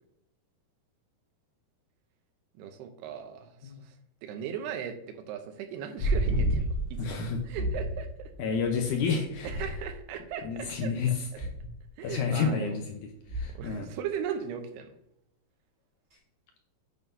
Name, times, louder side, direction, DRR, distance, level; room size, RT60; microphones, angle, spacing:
voice 1, 2.6-3.9 4.2-8.3 9.4-10.9 12.0-12.8 13.4-14.9, right 8 dB, 85° right, 6 dB, 2.8 m, -38 dB
sound 1, 6.0-11.7 12.0-12.1, right 2 dB, 45° left, 3.6 m, -34 dB
sound 2, 6.2-6.9 7.6-8.1 9.4-10.1 11.4-11.8 13.3-13.7 16.1-16.2, equal, 15° right, 3.0 m, -32 dB
voice 2, 7.0-7.4 8.4-9.7 10.4-11.7 12.0-13.0 13.3-13.9, left 5 dB, 75° left, 3 dB, 1.8 m, -30 dB
9.3 x 8.0 x 2.7 m, 0.79 s
omnidirectional pair, 4.6 m